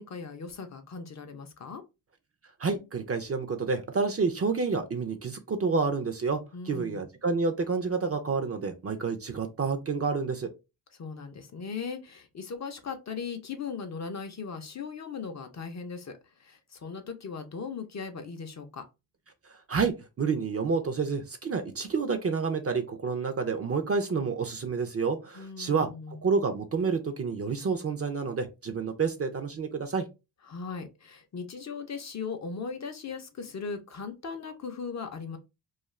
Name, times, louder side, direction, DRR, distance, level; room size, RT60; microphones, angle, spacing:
voice 1, 0.0-1.8 6.5-7.0 11.0-18.8 25.3-26.2 30.5-35.4, left 5 dB, 40° left, 0.5 m, -38 dB
voice 2, 2.6-6.4 6.7-10.5 19.7-25.9 26.2-30.0, right 5 dB, 35° right, 0.4 m, -29 dB
2.4 x 2.3 x 3.0 m
cardioid pair, 85°, 45 cm